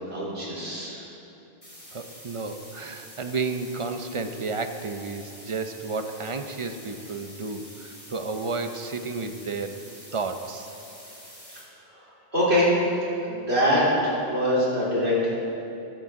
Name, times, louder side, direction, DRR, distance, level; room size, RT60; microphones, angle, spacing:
voice 1, 0.1-1.0 11.9-12.0 12.3-12.7 13.2-15.3, equal, 75° right, -8 dB, 3.9 m, -24 dB
sound 1, 1.6-11.6, equal, 10° left, 3.4 m, -46 dB
voice 2, 1.9-9.7 10.1-10.7, right 4 dB, 35° right, 7 dB, 0.6 m, -32 dB
22.0 x 8.6 x 3.8 m, 2.8 s
omnidirectional pair, 1.1 m